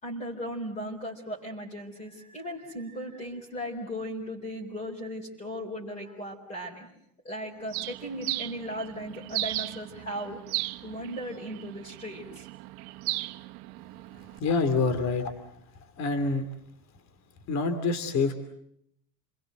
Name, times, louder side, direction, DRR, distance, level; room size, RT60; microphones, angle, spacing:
voice 1, 0.0-6.9 7.2-10.4 10.8-12.5, equal, 15° left, -2 dB, 4.6 m, -37 dB
Bird, 7.7-14.4, right 19 dB, 75° right, 1.4 m, -36 dB
voice 2, 14.4-15.3 16.0-16.5 17.5-18.3, left 4 dB, 35° left, 9 dB, 2.8 m, -26 dB
29.5 x 22.0 x 7.9 m, 0.74 s
supercardioid pair, 145°, 45 cm